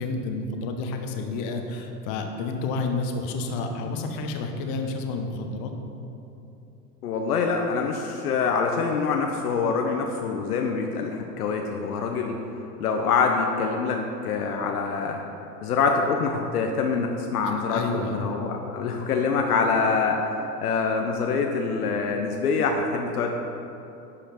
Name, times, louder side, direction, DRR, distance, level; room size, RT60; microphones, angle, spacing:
voice 1, 0.0-5.7 17.6-18.3, left 3 dB, 40° left, 4 dB, 1.1 m, -30 dB
voice 2, 7.0-12.4 12.8-15.2 15.6-23.3, left 5 dB, 65° left, 2 dB, 0.8 m, -25 dB
11.5 x 5.0 x 4.3 m, 2.8 s
figure-of-eight pair, 85°, 48 cm